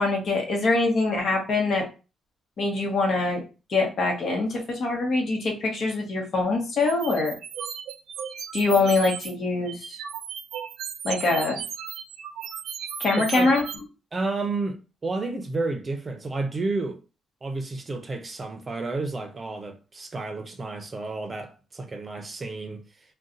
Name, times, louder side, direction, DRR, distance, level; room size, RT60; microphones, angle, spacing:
voice 1, 0.0-1.9 2.6-3.4 3.7-7.3 8.5-10.0 11.0-11.6 13.0-13.6, left 3 dB, 55° left, 1.1 m, -24 dB
sound 1, 6.8-9.3 9.7-13.8, right 8 dB, 80° right, 0.4 m, -36 dB
voice 2, 13.2-13.5 14.1-17.0 17.4-22.8, right 3 dB, 30° right, 0.6 m, -31 dB
2.5 x 2.3 x 3.8 m
cardioid pair, 90°, 0 cm